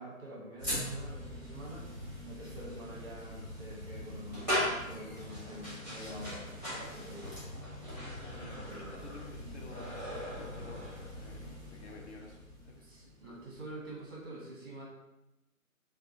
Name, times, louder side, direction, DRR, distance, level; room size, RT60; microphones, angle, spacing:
voice 1, 0.0-1.9 2.3-7.3 8.5-8.9 12.8-14.8, right 1 dB, 15° right, -5 dB, 0.8 m, -47 dB
sound 1, 0.6-13.8, equal, 10° left, 1.2 m, -40 dB
voice 2, 8.2-12.8, left 2 dB, 50° left, 0 dB, 0.7 m, -51 dB
6.0 x 2.4 x 2.8 m, 0.95 s
figure-of-eight pair, 155°, 43 cm